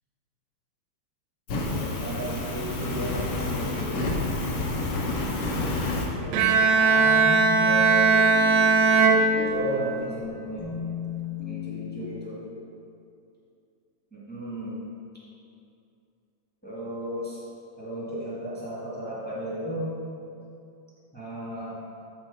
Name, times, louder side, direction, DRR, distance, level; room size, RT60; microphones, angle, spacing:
Fire, 1.5-6.1, left 2 dB, 70° left, 1.6 m, -29 dB
voice 1, 1.7-4.0 6.2-8.2 9.0-10.8 11.4-12.4 14.1-14.8 16.6-17.4 17.8-19.9 21.1-21.8, right 1 dB, 10° left, -10 dB, 0.5 m, -35 dB
sound 1, 4.8-12.1, left 7 dB, 90° left, 0.8 m, -37 dB
Bowed string instrument, 6.3-10.1, right 4 dB, 85° right, 2.5 m, -20 dB
8.2 x 4.2 x 6.9 m, 2.5 s
omnidirectional pair, 4.1 m